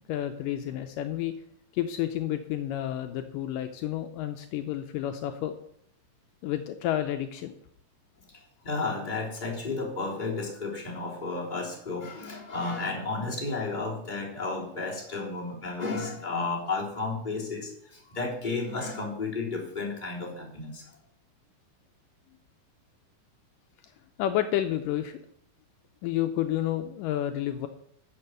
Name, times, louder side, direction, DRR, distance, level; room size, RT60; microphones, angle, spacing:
voice 1, 0.1-1.3 1.7-5.5 6.4-7.5 24.2-25.2 26.0-27.7, left 12 dB, 80° left, 7 dB, 2.2 m, -30 dB
voice 2, 8.3-20.8, left 3 dB, 15° left, -3 dB, 3.3 m, -33 dB
11.0 x 6.8 x 8.0 m, 0.69 s
omnidirectional pair, 4.0 m